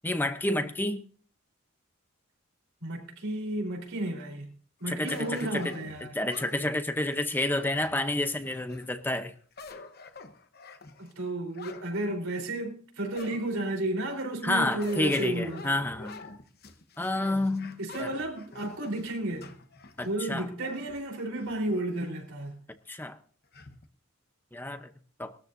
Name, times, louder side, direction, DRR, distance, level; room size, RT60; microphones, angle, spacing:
voice 1, 0.0-1.0 4.9-5.7 6.1-9.3 14.4-16.2 17.0-18.1 20.0-20.5 22.9-23.2 24.5-24.9 25.2-25.3, left 1 dB, 10° left, 0.7 m, -29 dB
voice 2, 2.8-4.5 4.8-6.1 11.0-15.7 17.8-19.5 20.0-22.5, right 1 dB, 90° right, 3.9 m, -32 dB
sound 1, 5.1-8.9 9.4-11.9 12.4-12.5 13.1-13.7 14.8-21.8 22.3-22.4 23.5-23.9, left 3 dB, 50° left, 1.0 m, -47 dB
20.5 x 13.0 x 2.6 m
head